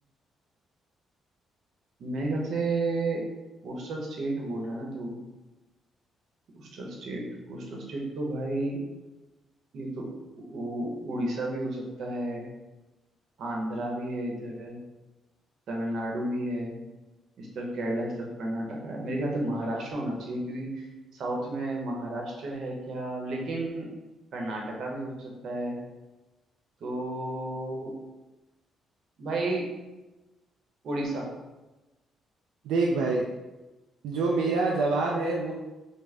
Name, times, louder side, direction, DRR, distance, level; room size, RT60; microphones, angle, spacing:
voice 1, 2.0-3.2 3.6-5.2 6.5-8.8 9.7-10.1 10.4-12.5 13.4-14.8 15.7-16.8 17.4-20.9 21.1-23.9 24.3-25.8 26.8-28.0 29.2-29.6 30.8-31.3, right 1 dB, 65° right, -1 dB, 0.8 m, -32 dB
voice 2, 32.6-33.2 34.0-35.5, right 3 dB, 90° right, -2 dB, 0.3 m, -26 dB
3.6 x 2.1 x 3.3 m, 1.1 s
cardioid pair, 90°, 0 cm